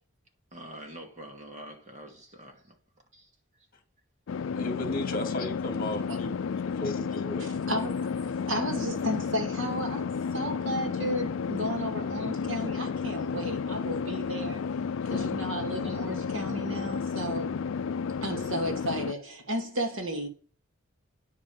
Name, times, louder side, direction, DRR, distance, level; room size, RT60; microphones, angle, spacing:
voice 1, 0.5-2.8 3.1-3.7 4.6-4.7, right 1 dB, 35° right, 2.4 m, -46 dB
sound 1, 4.3-19.1, left 6 dB, 70° left, 0.4 m, -32 dB
voice 2, 4.5-7.5, left 1 dB, 45° left, 2.1 m, -35 dB
voice 3, 7.4-14.6 15.1-17.5 18.2-20.3, equal, 70° right, 2.7 m, -33 dB
9.4 x 5.3 x 7.8 m
head